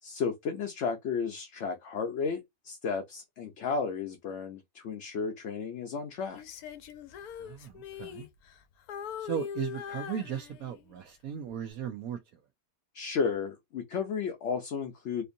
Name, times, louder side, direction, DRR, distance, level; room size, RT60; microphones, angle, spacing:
voice 1, 0.0-6.4 12.9-15.3, left 5 dB, 60° left, 0.9 m, -33 dB
Female singing, 6.3-8.6 8.9-10.9 11.5-11.7, left 8 dB, 80° left, 1.1 m, -41 dB
voice 2, 7.4-8.3 9.2-12.2, right 9 dB, 75° right, 1.0 m, -37 dB
4.4 x 2.6 x 2.6 m
omnidirectional pair, 1.6 m